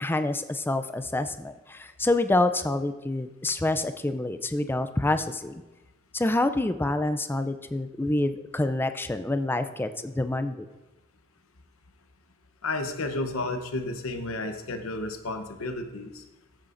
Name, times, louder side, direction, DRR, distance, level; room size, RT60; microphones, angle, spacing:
voice 1, 0.0-5.6 6.1-10.7, left 2 dB, 10° left, 9 dB, 0.4 m, -27 dB
voice 2, 12.6-16.2, left 2 dB, 75° left, 6 dB, 0.9 m, -32 dB
14.0 x 8.8 x 2.6 m, 1.1 s
head